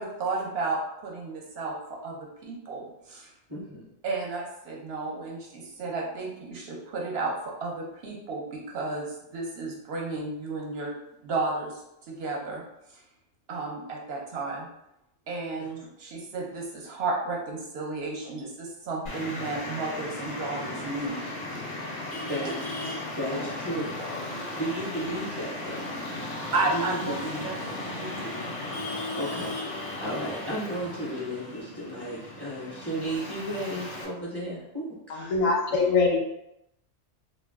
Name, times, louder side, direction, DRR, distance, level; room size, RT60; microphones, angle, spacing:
voice 1, 0.0-3.3 4.0-10.9 11.2-12.6 12.9-13.0 13.5-14.7 15.3-21.3 22.4-22.5 22.8-23.1 26.5-28.5, right 3 dB, 60° right, -2 dB, 0.8 m, -33 dB
voice 2, 3.5-3.8 22.3-22.9 23.2-25.8 26.7-27.4 29.2-35.8, right 1 dB, 30° right, -8 dB, 0.6 m, -34 dB
Traffic noise roadway noise, 19.1-34.1, left 2 dB, 50° left, 0.5 m, -36 dB
voice 3, 35.3-36.2, left 4 dB, 85° left, 0 dB, 1.0 m, -22 dB
2.4 x 2.2 x 3.4 m, 0.84 s
omnidirectional pair, 1.3 m